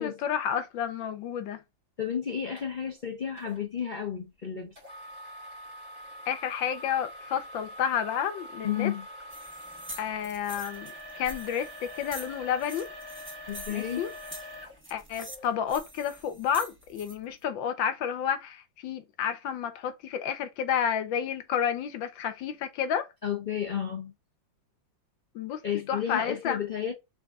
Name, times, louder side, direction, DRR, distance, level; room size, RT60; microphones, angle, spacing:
voice 1, 0.0-1.6 6.3-8.9 10.0-12.9 13.7-14.1 14.9-23.1 25.3-25.6 25.9-26.6, left 8 dB, 75° left, 1.5 m, -30 dB
voice 2, 2.0-4.7 8.6-9.1 13.5-14.0 23.2-24.1 25.6-26.9, left 8 dB, 55° left, 0.5 m, -32 dB
sound 1, 2.6-2.7 3.4-3.6 4.8-15.6 16.2-16.3 16.9-17.0, equal, 30° right, 2.8 m, -44 dB
sound 2, 9.3-17.1, right 1 dB, 15° right, 0.4 m, -46 dB
4.1 x 3.5 x 3.6 m
omnidirectional pair, 2.1 m